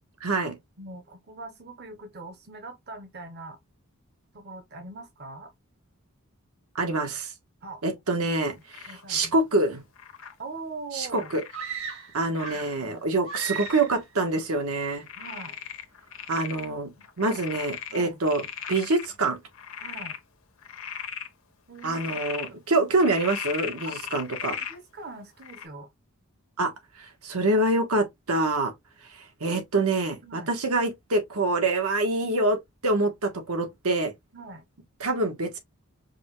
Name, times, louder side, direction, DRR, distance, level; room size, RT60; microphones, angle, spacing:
voice 1, 0.2-0.6 6.7-7.3 7.8-9.8 10.9-11.4 12.1-15.0 16.3-16.9 17.2-18.4 18.7-19.4 21.8-24.6 26.6-26.7 27.0-28.7 29.1-32.6 32.8-34.1 35.0-35.6, right 2 dB, 80° right, 1.2 m, -26 dB
voice 2, 0.8-3.6 4.3-5.5 7.6-7.8 8.9-9.3 10.4-11.3 15.2-15.6 17.0-17.4 17.9-18.2 19.8-20.2 21.7-22.0 22.5-22.6 23.8-24.0 24.6-25.9 30.2-30.5 34.3-34.6, right 3 dB, 45° right, 0.8 m, -42 dB
Frog, 8.7-9.0 10.0-10.3 11.1-11.6 12.4-12.8 13.3-13.9 14.3-14.4 15.1-16.7 17.0-19.1 19.5-20.2 20.6-21.3 21.8-22.5 23.0-24.8 25.4-25.7, left 8 dB, 65° left, 0.9 m, -37 dB
sound 1, 11.5-12.9 13.2-14.0, right 7 dB, 65° right, 1.6 m, -36 dB
5.2 x 2.2 x 3.0 m
head